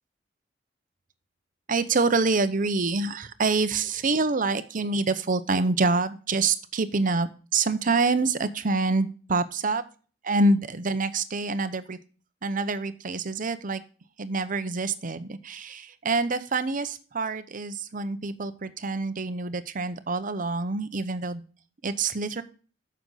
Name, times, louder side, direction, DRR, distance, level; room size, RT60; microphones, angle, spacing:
voice 1, 1.7-9.8 10.2-12.0 12.4-13.8 14.2-21.4 21.8-22.4, right 3 dB, 45° right, 12 dB, 0.8 m, -26 dB
9.5 x 6.9 x 4.0 m, 0.38 s
head